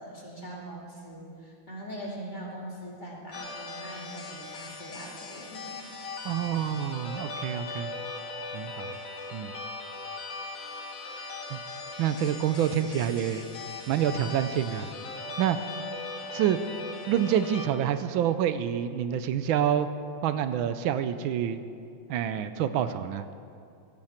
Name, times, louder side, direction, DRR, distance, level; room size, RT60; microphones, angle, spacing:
voice 1, 0.0-5.8, right 1 dB, 20° left, -4 dB, 2.6 m, -42 dB
sound 1, 3.3-17.7, left 3 dB, 45° left, 1.5 m, -39 dB
voice 2, 6.2-7.9 8.5-8.9 9.3-9.5 11.5-11.6 12.0-13.4 13.9-14.9 15.4-15.6 16.3-16.6 17.1-19.9 20.2-21.6 22.1-23.2, right 10 dB, 80° right, 11 dB, 1.4 m, -27 dB
16.5 x 15.5 x 4.4 m, 2.4 s
omnidirectional pair, 2.2 m